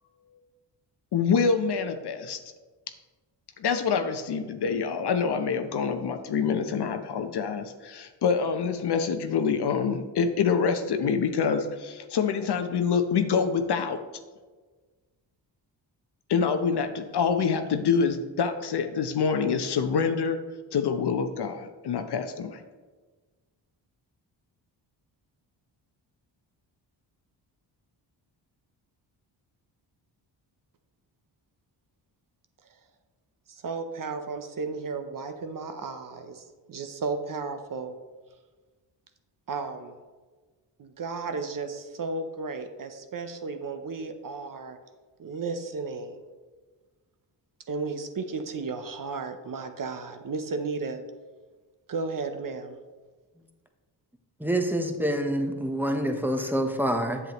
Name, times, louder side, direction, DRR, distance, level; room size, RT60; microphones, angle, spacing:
voice 1, 1.1-2.4 3.6-14.0 16.3-20.4 20.7-22.6, left 6 dB, 60° left, 8 dB, 0.8 m, -26 dB
voice 2, 33.5-38.0 39.5-39.9 40.8-44.8 45.2-46.2 47.7-51.0 51.9-52.8, right 4 dB, 45° right, 7 dB, 0.8 m, -34 dB
voice 3, 54.4-57.2, right 1 dB, 5° right, 5 dB, 0.9 m, -26 dB
8.0 x 7.3 x 3.0 m, 1.3 s
cardioid pair, 70°, 45 cm